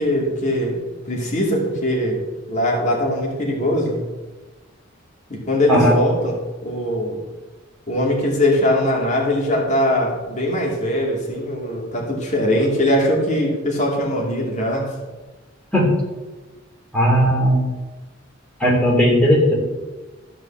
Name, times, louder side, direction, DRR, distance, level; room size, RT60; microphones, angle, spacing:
voice 1, 0.0-2.2 2.5-4.0 5.3-7.2 7.9-14.9, left 1 dB, 35° left, -2 dB, 2.4 m, -21 dB
voice 2, 16.9-17.7 18.6-19.5, equal, 5° left, -4 dB, 3.1 m, -16 dB
14.0 x 4.8 x 7.3 m, 1.2 s
head